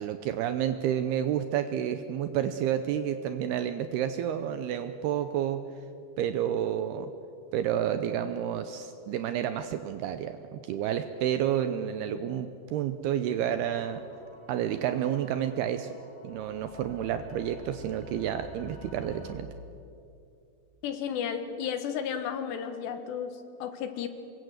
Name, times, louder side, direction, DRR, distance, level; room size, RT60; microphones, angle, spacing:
voice 1, 0.0-5.6 6.2-7.1 7.5-14.0 14.5-15.9 16.2-19.5, right 10 dB, 80° right, 9 dB, 2.4 m, -30 dB
sound 1, 13.5-19.3, left 3 dB, 5° left, 2.7 m, -49 dB
voice 2, 20.8-24.1, left 8 dB, 70° left, 8 dB, 3.4 m, -33 dB
26.5 x 22.5 x 8.0 m, 2.7 s
omnidirectional pair, 5.3 m